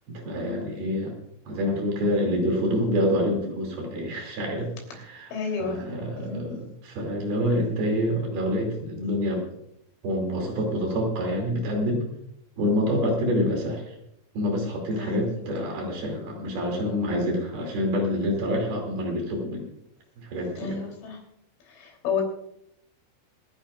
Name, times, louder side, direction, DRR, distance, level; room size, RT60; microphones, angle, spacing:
voice 1, 0.1-1.1 1.5-5.3 5.7-9.5 10.0-12.0 12.6-13.9 14.3-19.7 20.2-20.8, equal, 55° right, 1 dB, 4.1 m, -27 dB
voice 2, 5.3-5.8 6.2-6.6 15.0-15.9 20.6-21.2 21.7-22.2, left 5 dB, 85° left, 1 dB, 5.6 m, -32 dB
27.0 x 10.5 x 2.4 m, 0.76 s
omnidirectional pair, 5.4 m